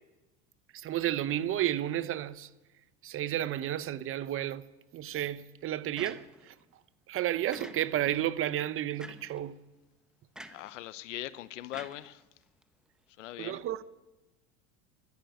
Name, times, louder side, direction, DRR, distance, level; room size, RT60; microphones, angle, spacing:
voice 1, 0.7-2.5 3.0-4.6 4.9-6.5 7.1-9.6 13.4-13.8, right 12 dB, 35° right, 0.8 m, -32 dB
sound 1, 6.0-6.6 7.5-8.2 9.0-9.4 10.4-10.8 11.7-12.6, right 1 dB, ahead, 0.9 m, -48 dB
voice 2, 10.5-12.2 13.2-13.6, left 14 dB, 90° left, 0.8 m, -41 dB
14.0 x 11.0 x 9.2 m
supercardioid pair, 105°, 36 cm